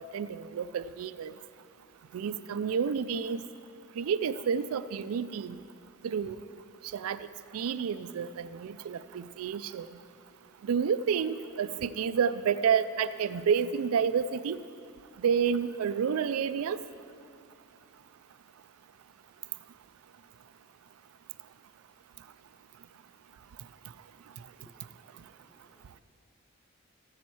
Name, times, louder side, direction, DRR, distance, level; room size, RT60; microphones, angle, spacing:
voice 1, 0.0-1.3 2.1-3.4 4.0-5.6 6.0-6.4 6.9-7.3 7.5-9.9 10.6-14.6 15.2-16.8, right 7 dB, 80° right, 14 dB, 0.4 m, -29 dB
voice 2, 24.5-26.0, equal, 5° left, 6 dB, 0.5 m, -64 dB
14.5 x 7.1 x 4.7 m, 2.3 s
head